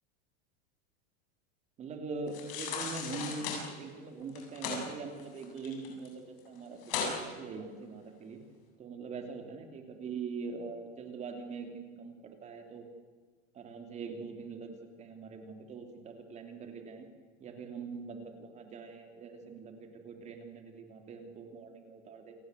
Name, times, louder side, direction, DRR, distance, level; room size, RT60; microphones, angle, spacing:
voice 1, 1.8-8.4 8.8-12.8 13.5-14.7 15.0-17.1 17.4-22.3, right 4 dB, 20° right, 5 dB, 2.9 m, -43 dB
sound 1, 2.3-3.6 4.3-4.8 5.2-6.1 6.4-6.5 6.8-7.2 7.6-7.7, left 6 dB, 55° left, 7.7 m, -36 dB
29.0 x 19.0 x 8.0 m, 1.5 s
supercardioid pair, 170°, 33 cm